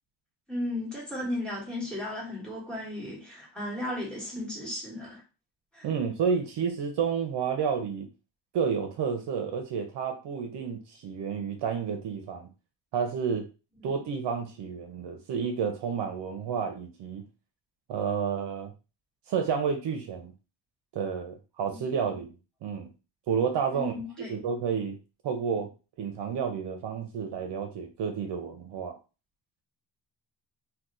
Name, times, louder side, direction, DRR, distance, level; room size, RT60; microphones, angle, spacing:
voice 1, 0.5-5.2 5.7-5.9 13.8-13.9 21.7-22.0 23.7-24.3, left 1 dB, ahead, 1.4 m, -35 dB
voice 2, 5.8-8.1 8.5-12.5 12.9-13.5 13.8-17.2 17.9-18.7 19.3-20.3 20.9-22.4 22.6-22.9 23.3-24.0 24.3-25.0 25.2-25.7 26.0-29.0, right 6 dB, 65° right, 0.6 m, -30 dB
2.8 x 2.2 x 3.6 m
wide cardioid pair, 170°, 44 cm